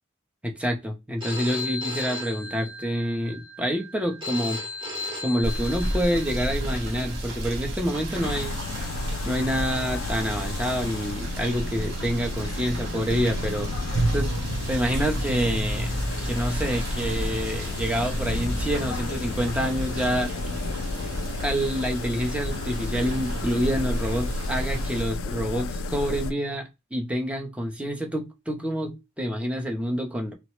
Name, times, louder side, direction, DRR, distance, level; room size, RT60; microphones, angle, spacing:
voice 1, 0.4-4.6 5.2-8.5 9.2-13.7 14.1-14.3 14.7-15.9 16.2-20.3 21.4-30.3, equal, 5° right, 0.5 m, -27 dB
Telephone, 1.2-7.2, left 2 dB, 25° right, 0.9 m, -36 dB
Rain / Motor vehicle (road), 5.4-25.0, right 1 dB, 60° right, 0.9 m, -31 dB
sound 1, 8.2-26.3, left 3 dB, 85° left, 0.4 m, -33 dB
3.1 x 2.0 x 3.0 m
head